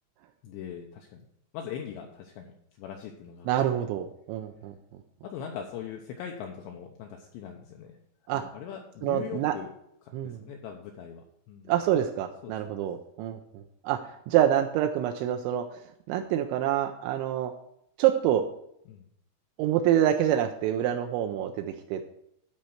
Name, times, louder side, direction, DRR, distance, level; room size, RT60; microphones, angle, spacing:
voice 1, 0.4-1.2 1.5-2.5 2.8-3.8 5.2-7.9 8.3-9.7 10.0-11.7 12.4-12.7 18.9-19.1, left 8 dB, 85° left, 2 dB, 2.6 m, -41 dB
voice 2, 3.5-4.8 8.3-8.4 9.0-9.5 10.1-10.4 11.7-14.0 14.3-15.6 16.1-17.5 18.0-18.5 19.6-22.1, right 11 dB, 85° right, 4 dB, 2.7 m, -26 dB
12.5 x 4.4 x 6.3 m, 0.75 s
omnidirectional pair, 6.0 m